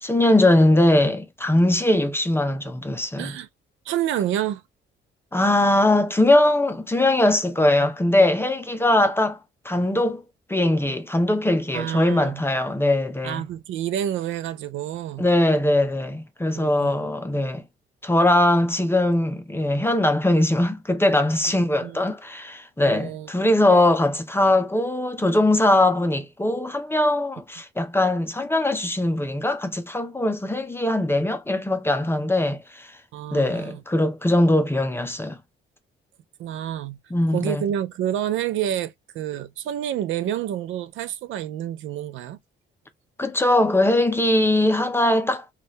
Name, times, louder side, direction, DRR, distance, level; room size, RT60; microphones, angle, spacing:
voice 1, 0.0-3.3 5.3-9.4 9.6-10.2 10.5-13.4 15.2-17.6 18.0-32.9 33.3-35.4 37.1-37.6 43.2-45.4, left 1 dB, 10° left, 0.6 m, -21 dB
voice 2, 3.2-3.5 3.9-4.6 11.7-12.4 13.2-15.3 16.5-17.1 21.8-22.0 22.8-23.3 33.1-33.8 36.4-37.0 37.3-42.4, right 11 dB, 80° right, 0.5 m, -28 dB
2.6 x 2.4 x 3.1 m
cardioid pair, 90°, 20 cm